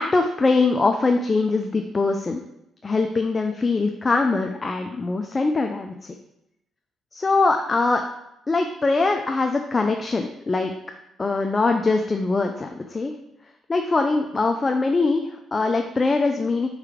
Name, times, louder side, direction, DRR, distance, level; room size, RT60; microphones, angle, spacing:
voice 1, 0.0-2.4 2.8-6.1 7.1-8.0 8.5-10.7 11.2-13.1 13.7-16.7, left 3 dB, 30° left, 4 dB, 0.5 m, -22 dB
4.8 x 4.7 x 5.0 m, 0.83 s
cardioid pair, 90°, 0 cm